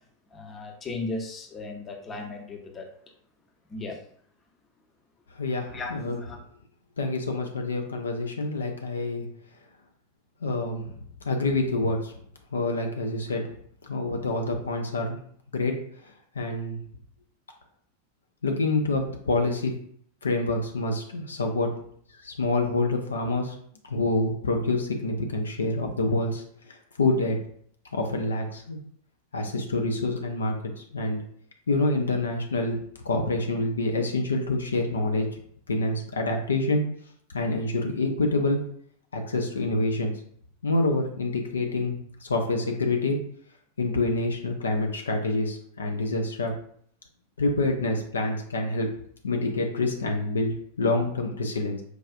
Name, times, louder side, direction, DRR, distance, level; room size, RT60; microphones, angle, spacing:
voice 1, 0.3-2.9 3.7-4.0 5.7-6.4, left 3 dB, 25° left, 2 dB, 0.7 m, -36 dB
voice 2, 5.4-6.2 7.0-9.3 10.4-10.9 11.2-12.1 12.5-13.4 13.8-15.2 15.5-15.7 16.0-16.8 18.4-19.7 20.2-21.7 22.2-23.6 23.8-27.4 27.9-28.8 29.3-31.2 31.7-32.8 33.0-35.3 35.7-36.8 37.3-38.6 39.1-40.1 40.6-43.2 43.8-46.5 47.4-48.9 49.2-51.8, left 2 dB, 70° left, 3 dB, 0.5 m, -27 dB
4.7 x 2.4 x 2.5 m, 0.62 s
figure-of-eight pair, 90°, 0 cm